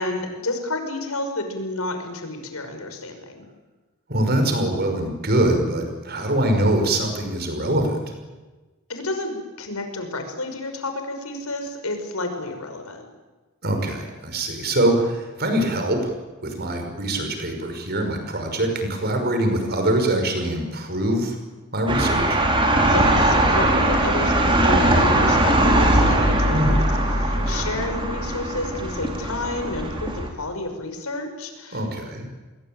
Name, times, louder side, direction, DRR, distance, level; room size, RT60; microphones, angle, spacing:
voice 1, 0.0-3.5 8.9-13.0 22.8-26.8 27.2-31.9, left 2 dB, 85° left, 6 dB, 5.7 m, -30 dB
voice 2, 4.1-8.1 13.6-16.1 16.4-21.4 21.7-22.4 26.5-26.8 27.3-27.7 31.7-32.3, right 1 dB, 50° right, 5 dB, 5.8 m, -23 dB
sound 1, 21.9-30.3, right 1 dB, 25° right, 4.7 m, -20 dB
29.0 x 21.5 x 9.1 m, 1.2 s
head